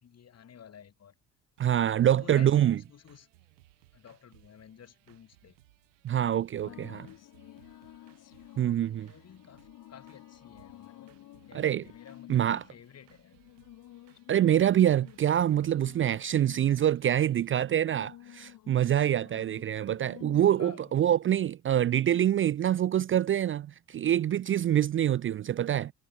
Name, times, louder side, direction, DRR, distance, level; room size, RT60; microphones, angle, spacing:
voice 1, 0.0-1.1 1.8-3.3 3.9-5.5 6.6-7.2 8.1-8.4 8.9-13.4 19.3-19.6 20.4-21.1, left 8 dB, 45° left, 1.9 m, -53 dB
voice 2, 1.6-2.8 6.0-7.0 8.6-9.1 11.5-11.8 12.3-12.6 14.3-25.9, right 11 dB, 35° right, 0.5 m, -25 dB
sound 1, 1.6-17.6, right 19 dB, 80° right, 2.3 m, -63 dB
sound 2, 6.6-21.0, left 14 dB, 60° left, 1.4 m, -52 dB
hypercardioid pair, 50°, 36 cm